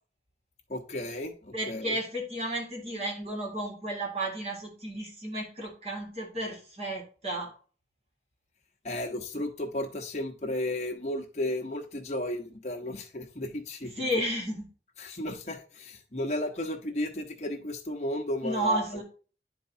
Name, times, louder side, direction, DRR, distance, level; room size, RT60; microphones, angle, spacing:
voice 1, 0.7-2.0 8.8-14.1 15.0-19.0, left 1 dB, 40° left, 2 dB, 1.1 m, -34 dB
voice 2, 1.5-7.5 14.0-14.7 18.4-19.0, right 1 dB, 35° right, -2 dB, 2.0 m, -32 dB
10.5 x 4.6 x 2.7 m, 0.39 s
head